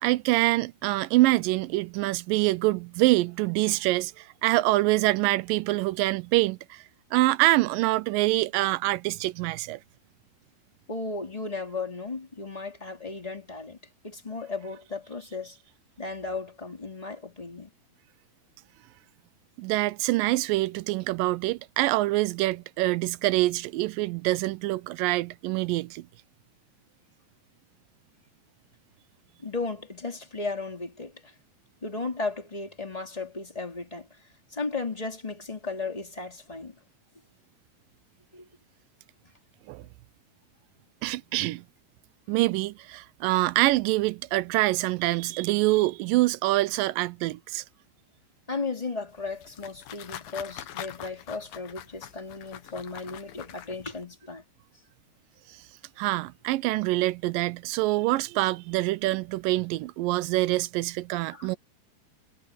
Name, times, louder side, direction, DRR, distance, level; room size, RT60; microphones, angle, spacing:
voice 1, 0.0-6.8 7.1-9.8 19.6-26.0 39.7-39.8 41.0-41.6 42.3-47.6 56.0-61.6, right 18 dB, 85° right, 2.2 m, -25 dB
voice 2, 10.9-13.8 14.0-15.6 16.0-17.7 29.4-31.3 31.8-34.1 34.5-36.7 38.3-38.4 48.5-54.4 61.3-61.5, left 3 dB, 10° left, 2.8 m, -35 dB
sound 1, 49.1-54.0, left 11 dB, 80° left, 3.0 m, -44 dB
omnidirectional pair, 4.0 m